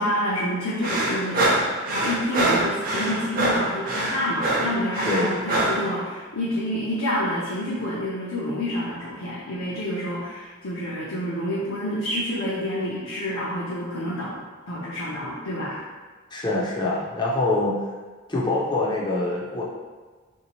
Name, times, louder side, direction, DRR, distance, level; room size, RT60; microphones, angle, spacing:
voice 1, 0.0-1.4 1.9-14.4 14.7-15.8, equal, 80° left, -8 dB, 0.7 m, -28 dB
sound 1, 0.8-5.8, right 1 dB, 40° right, 0.5 m, -24 dB
voice 2, 16.3-17.8 18.3-19.6, left 2 dB, 20° left, -4 dB, 0.4 m, -24 dB
3.4 x 2.7 x 3.0 m, 1.4 s
head